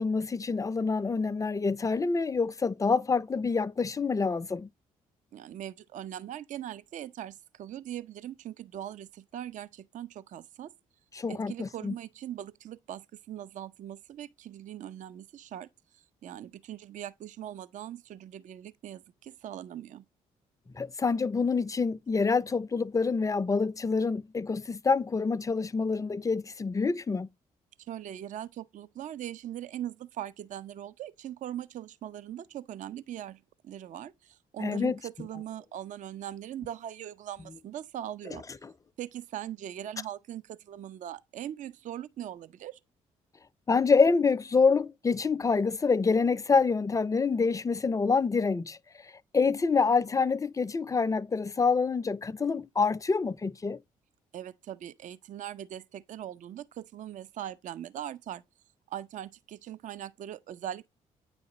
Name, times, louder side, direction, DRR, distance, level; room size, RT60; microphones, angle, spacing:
voice 1, 0.0-4.7 11.1-12.0 20.8-27.3 34.6-35.0 43.7-48.8 49.0-53.8, left 4 dB, 20° left, 0.4 m, -26 dB
voice 2, 5.3-10.7 11.3-15.7 15.9-20.0 27.8-38.4 39.0-42.8 54.3-58.4 58.9-60.9, right 11 dB, 55° right, 0.4 m, -41 dB
9.0 x 4.0 x 2.9 m
hypercardioid pair, 50°, 16 cm